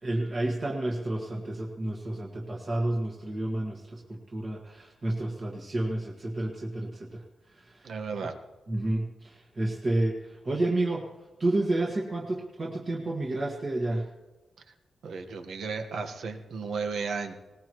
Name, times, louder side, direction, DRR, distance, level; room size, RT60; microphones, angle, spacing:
voice 1, 0.0-8.0 8.7-14.1, right 2 dB, 35° right, -2 dB, 1.7 m, -30 dB
voice 2, 7.8-8.3 15.0-17.3, right 4 dB, 75° right, 5 dB, 1.4 m, -34 dB
20.5 x 19.5 x 3.1 m, 1.1 s
wide cardioid pair, 150°, 0 cm